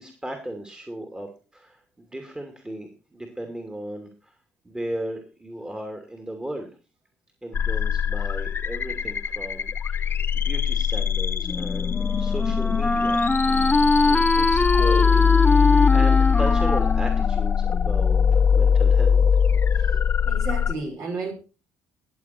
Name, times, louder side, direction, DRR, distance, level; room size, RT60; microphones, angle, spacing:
voice 1, 0.0-4.3 4.6-6.7 7.4-18.2 18.5-19.2, right 1 dB, 15° right, 2.7 m, -36 dB
sound 1, 7.5-20.7, left 7 dB, 40° left, 1.0 m, -21 dB
Wind instrument woodwind instrument, 11.4-18.3, left 2 dB, 15° left, 0.9 m, -23 dB
voice 2, 19.7-21.3, right 3 dB, 55° right, 4.9 m, -33 dB
20.5 x 7.2 x 4.4 m
hypercardioid pair, 50°, 6 cm